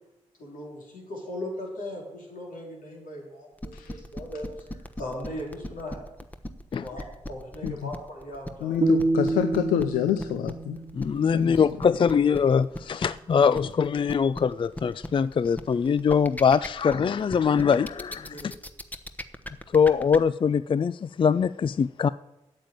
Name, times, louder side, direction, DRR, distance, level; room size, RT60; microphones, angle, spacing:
voice 1, 0.4-6.0 6.7-8.8 18.1-18.5, left 1 dB, 70° left, 4.4 m, -38 dB
sound 1, 3.6-20.2, left 1 dB, 10° left, 1.1 m, -37 dB
voice 2, 8.6-10.8 11.3-11.5, left 10 dB, 90° left, 0.5 m, -27 dB
sound 2, 8.8-11.9, right 3 dB, 45° right, 1.0 m, -28 dB
voice 3, 10.9-18.4 19.7-22.1, left 6 dB, 35° left, 0.3 m, -23 dB
8.6 x 7.8 x 9.0 m
supercardioid pair, 40°, 14 cm